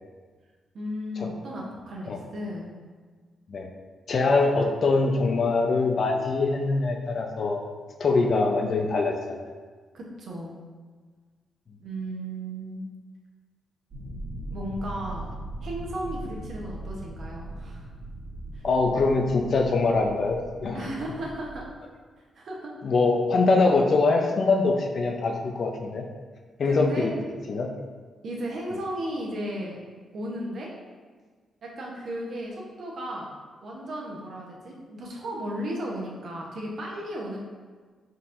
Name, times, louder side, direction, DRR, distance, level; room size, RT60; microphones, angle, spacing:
voice 1, 0.7-2.7 9.9-10.6 11.8-12.9 14.5-15.3 15.6-17.9 18.5-18.6 20.7-21.7 22.3-22.7 26.6-27.1 28.2-29.8 30.1-30.7 31.6-33.3 33.6-37.4, right 1 dB, 60° right, -2 dB, 0.8 m, -35 dB
voice 2, 4.1-7.7 8.0-9.4 18.6-20.9 22.8-26.0 26.6-27.1 27.5-27.7, left 3 dB, 50° left, 3 dB, 0.4 m, -23 dB
sound 1, 13.9-21.7, right 1 dB, 45° right, 1.3 m, -39 dB
4.2 x 3.8 x 2.5 m, 1.5 s
cardioid pair, 110°, 0 cm